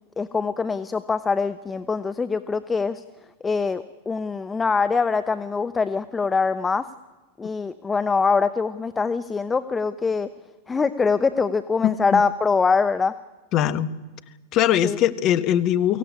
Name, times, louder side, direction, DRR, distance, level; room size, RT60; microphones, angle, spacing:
voice 1, 0.2-3.0 3.4-6.9 7.4-10.3 10.7-13.1 14.8-15.0, left 4 dB, 15° left, 12 dB, 0.9 m, -23 dB
voice 2, 11.8-12.2 13.5-13.9 14.5-16.0, left 11 dB, 40° left, 12 dB, 1.3 m, -21 dB
23.5 x 16.5 x 9.8 m, 1.2 s
figure-of-eight pair, 95°, 0 cm